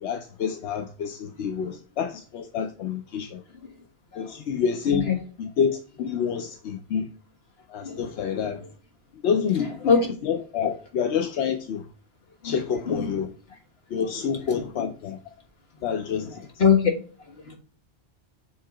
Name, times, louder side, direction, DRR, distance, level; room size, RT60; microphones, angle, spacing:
voice 1, 0.0-3.4 4.2-5.1 5.4-7.1 7.7-8.6 9.2-9.9 10.2-11.9 12.4-13.3 13.9-15.2 15.8-16.4, left 7 dB, 90° left, 0.9 m, -28 dB
voice 2, 1.4-1.8 4.1-4.5 4.9-5.2 6.0-6.2 7.8-8.0 8.6-8.7 9.5-10.1 10.6-10.7 12.4-12.6 12.9-13.1 14.5-14.9 16.2-16.9 17.2-17.6, left 6 dB, 65° left, 1.7 m, -25 dB
7.4 x 2.8 x 4.9 m
omnidirectional pair, 1.1 m